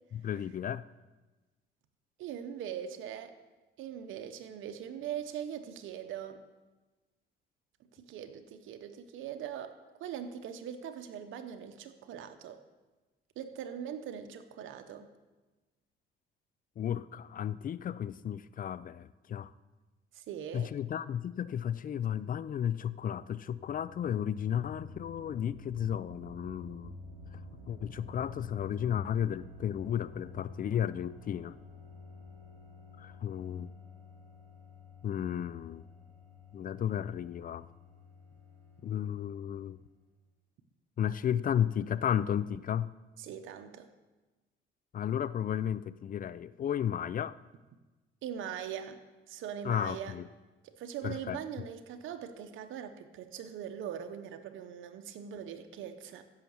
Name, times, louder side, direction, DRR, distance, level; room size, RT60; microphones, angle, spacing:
voice 1, 0.1-0.8 16.8-19.5 20.5-26.9 27.7-31.5 33.0-33.7 35.0-35.8 36.5-37.7 38.8-39.8 41.0-42.9 44.9-47.4 49.6-50.2 51.0-51.4, left 9 dB, 45° left, 17 dB, 0.4 m, -33 dB
voice 2, 2.2-3.3 3.8-6.4 7.9-12.6 13.4-15.1 20.1-20.7 43.2-43.9 48.2-49.0 49.3-50.2 50.6-56.2, right 9 dB, 85° right, 8 dB, 0.9 m, -41 dB
sound 1, 23.4-39.8, left 3 dB, 40° right, 4.3 m, -50 dB
15.5 x 5.8 x 7.1 m, 1.2 s
cardioid pair, 90°, 20 cm